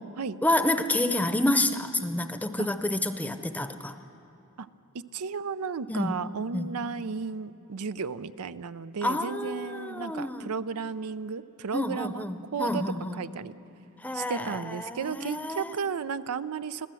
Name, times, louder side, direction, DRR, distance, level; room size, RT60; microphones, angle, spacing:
voice 1, 0.4-4.0 5.9-6.2 6.5-6.7 9.0-10.5 11.7-13.2 14.0-15.7, left 1 dB, 5° left, 9 dB, 0.7 m, -29 dB
voice 2, 4.9-12.3 12.5-12.8 13.2-13.6 14.1-16.9, right 5 dB, 85° right, 14 dB, 0.5 m, -34 dB
25.5 x 16.0 x 7.7 m, 2.8 s
head